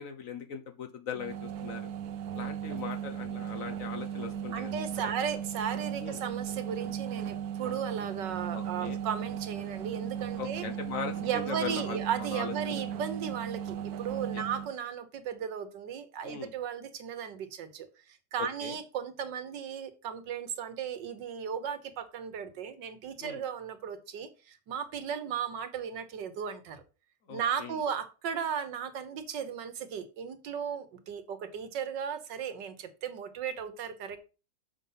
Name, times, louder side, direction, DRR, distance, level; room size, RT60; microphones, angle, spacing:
voice 1, 0.0-1.9 2.3-5.1 6.0-6.2 8.5-9.0 10.4-12.8 14.3-14.4 16.2-16.5 18.4-18.8 23.2-23.4 27.3-27.8, left 6 dB, 55° left, 1.3 m, -40 dB
sound 1, 1.1-14.7, right 9 dB, 65° right, 1.2 m, -36 dB
voice 2, 4.5-10.7 11.2-26.8 27.3-34.2, right 8 dB, 80° right, 1.8 m, -36 dB
7.0 x 5.6 x 5.6 m
omnidirectional pair, 1.9 m